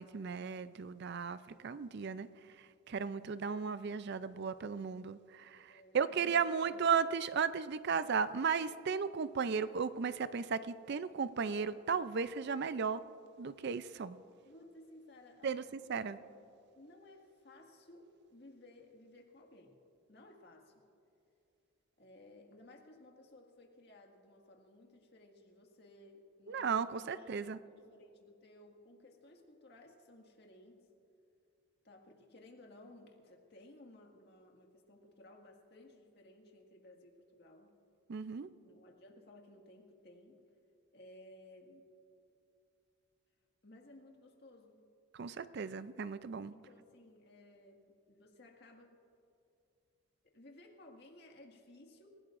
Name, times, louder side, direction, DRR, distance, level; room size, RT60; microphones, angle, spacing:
voice 1, 0.0-2.3 2.6-13.0 13.4-14.2 15.4-15.6 15.9-16.2 26.5-27.6 38.1-38.5 45.1-46.5, right 6 dB, 50° right, 14 dB, 0.4 m, -35 dB
voice 2, 5.7-6.8 14.4-15.7 16.1-16.3 16.8-19.8 20.1-20.9 22.0-30.9 31.8-37.7 38.6-40.4 40.9-41.9 43.6-44.8 46.5-49.0 50.2-52.1, left 1 dB, 45° left, 1 dB, 1.9 m, -58 dB
28.0 x 16.5 x 2.5 m, 2.7 s
head